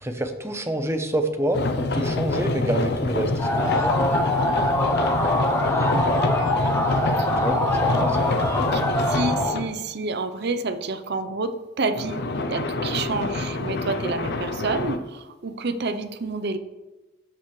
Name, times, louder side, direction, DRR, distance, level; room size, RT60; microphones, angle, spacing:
voice 1, 0.0-3.9 7.4-8.7, right 1 dB, 15° right, 6 dB, 0.8 m, -28 dB
sound 1, 1.5-9.7 11.9-15.0, left 2 dB, 55° left, 0.6 m, -26 dB
sound 2, 3.4-9.6, left 1 dB, 15° left, 0.9 m, -24 dB
voice 2, 9.1-12.2 12.5-16.6, right 3 dB, 55° right, 10 dB, 0.7 m, -28 dB
13.0 x 6.7 x 3.3 m, 1.1 s
head